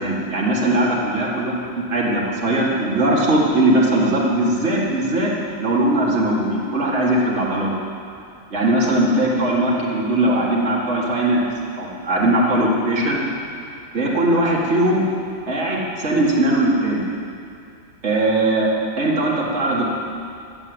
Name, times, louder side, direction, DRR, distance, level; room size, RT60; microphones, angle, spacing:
voice 1, 0.0-1.6 1.9-5.3 5.6-7.7 8.5-11.5 11.8-13.2 13.9-15.1 15.5-17.1 18.0-18.7 19.0-19.8, right 1 dB, 55° right, -4 dB, 2.3 m, -19 dB
16.0 x 7.7 x 8.0 m, 2.5 s
omnidirectional pair, 1.4 m